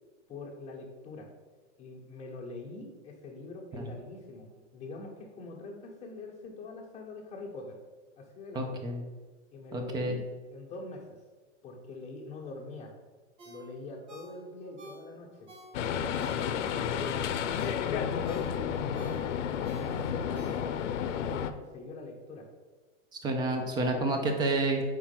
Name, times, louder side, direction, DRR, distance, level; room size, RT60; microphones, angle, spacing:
voice 1, 0.3-1.3 1.8-7.8 8.2-8.8 9.5-10.2 10.5-11.1 11.6-12.9 13.4-15.5 15.8-17.2 17.8-19.2 19.6-20.7 21.2-22.5, left 3 dB, 20° left, -2 dB, 1.2 m, -44 dB
voice 2, 8.5-9.0 9.7-10.2 23.2-24.8, right 2 dB, 10° right, 3 dB, 0.6 m, -29 dB
Ringtone, 13.4-16.8 17.2-21.0 21.4-21.5, right 1 dB, 70° right, 2.0 m, -51 dB
sound 1, 15.7-21.5, left 8 dB, 80° left, 0.6 m, -31 dB
4.5 x 4.5 x 5.8 m, 1.3 s
hypercardioid pair, 145°, 36 cm